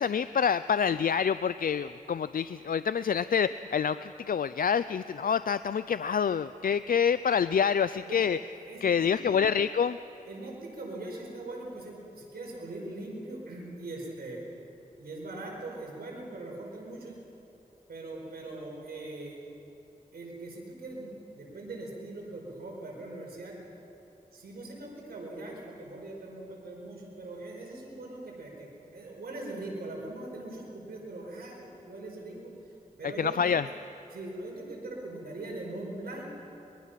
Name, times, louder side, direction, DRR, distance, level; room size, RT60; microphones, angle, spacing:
voice 1, 0.0-8.4 8.8-10.0 33.2-33.6, left 7 dB, 65° left, 14 dB, 0.4 m, -27 dB
voice 2, 8.6-9.4 10.3-14.4 15.0-17.2 17.9-19.4 20.1-23.6 24.3-32.5 33.0-33.7 34.1-36.3, right 2 dB, 85° right, -1 dB, 5.3 m, -41 dB
23.0 x 21.5 x 5.8 m, 2.9 s
cardioid pair, 50°, 16 cm